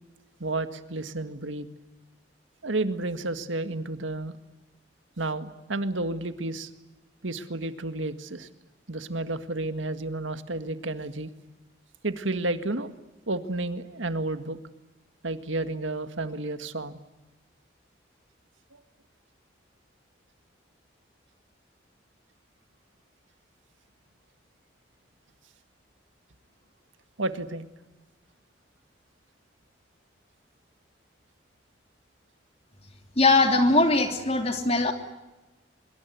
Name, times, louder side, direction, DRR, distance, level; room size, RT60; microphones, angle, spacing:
voice 1, 0.4-1.7 2.6-4.4 5.2-6.7 7.2-8.5 8.9-11.3 12.0-12.9 13.3-14.6 15.2-17.0 27.2-27.7, right 2 dB, 85° right, 10 dB, 1.9 m, -31 dB
voice 2, 33.2-34.9, left 2 dB, 30° left, 6 dB, 3.0 m, -21 dB
25.5 x 23.0 x 9.5 m, 1.0 s
head